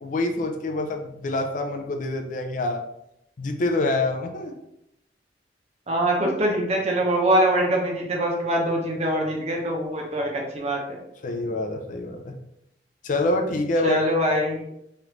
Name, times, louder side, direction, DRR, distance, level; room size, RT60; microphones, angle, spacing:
voice 1, 0.0-2.8 3.4-4.5 11.2-12.4 13.0-14.0, left 2 dB, 45° left, 4 dB, 0.4 m, -26 dB
voice 2, 5.9-11.0 13.8-14.7, right 1 dB, 40° right, 0 dB, 0.7 m, -23 dB
3.2 x 2.5 x 3.0 m, 0.79 s
head